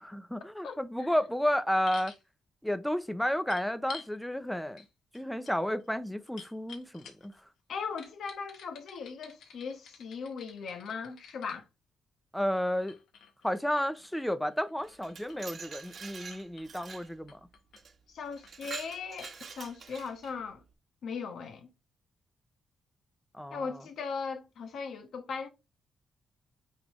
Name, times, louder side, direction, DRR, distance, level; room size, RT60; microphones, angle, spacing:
voice 1, 0.0-2.1 2.6-4.8 5.1-7.3 12.3-13.0 13.4-17.4 23.3-23.7, equal, 5° left, 0.6 m, -32 dB
voice 2, 0.6-1.1 7.7-11.6 18.1-20.6 21.0-21.7 23.5-25.5, left 5 dB, 65° left, 1.2 m, -38 dB
sound 1, 1.9-2.2 3.5-4.1 4.8-4.9 5.1-7.4 8.0-11.6 12.6-16.0 16.3-16.9 17.3-17.8 18.2-18.8 19.2-19.4 19.6-19.7, left 5 dB, 85° left, 1.4 m, -51 dB
Glass, 14.8-17.1 17.8-17.9 18.3-20.3, right 5 dB, 45° right, 1.1 m, -45 dB
9.0 x 3.4 x 3.1 m
cardioid pair, 125°, 0 cm